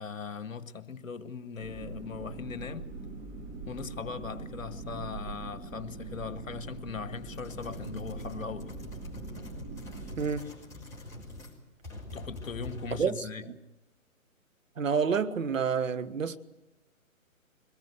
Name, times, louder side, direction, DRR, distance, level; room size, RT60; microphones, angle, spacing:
voice 1, 0.0-2.9 3.7-8.8 12.1-13.5, left 5 dB, 65° left, 1.6 m, -39 dB
sound 1, 1.6-10.2, right 3 dB, 15° right, 4.1 m, -42 dB
sound 2, 7.3-11.6 11.8-13.1, left 1 dB, 5° left, 4.1 m, -44 dB
voice 2, 10.2-10.5 13.0-13.2 14.8-16.4, right 6 dB, 65° right, 1.4 m, -28 dB
23.0 x 20.0 x 8.2 m
figure-of-eight pair, 140°, 42 cm